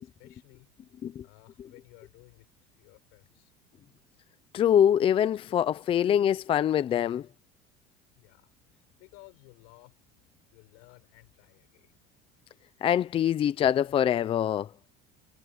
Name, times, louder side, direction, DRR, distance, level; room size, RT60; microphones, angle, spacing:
voice 1, 0.0-0.9 1.2-2.5 2.8-3.5 8.1-10.0 10.5-11.9, left 30 dB, 85° left, 6.3 m, -56 dB
voice 2, 4.5-7.3 12.8-14.7, left 9 dB, 30° left, 0.5 m, -24 dB
cardioid pair, 145°, 18 cm